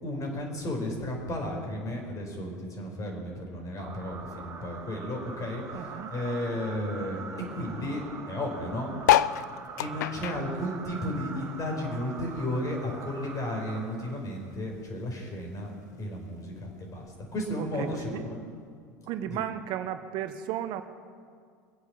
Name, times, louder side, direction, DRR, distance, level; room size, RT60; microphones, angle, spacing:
voice 1, 0.0-7.2 7.5-8.9 9.8-15.7 16.0-18.4 19.2-19.5, left 1 dB, 40° left, 1 dB, 4.9 m, -34 dB
sound 1, 3.8-14.5, right 5 dB, 35° right, 2.3 m, -43 dB
voice 2, 5.7-6.1 17.6-18.2 19.1-20.8, right 11 dB, 55° right, 10 dB, 1.0 m, -34 dB
sound 2, 9.0-11.8 12.1-13.6 14.1-14.2 14.4-14.5 14.7-15.1 15.9-16.0, left 12 dB, 80° left, 0.4 m, -28 dB
23.0 x 8.3 x 7.3 m, 2.2 s
hypercardioid pair, 80°, 9 cm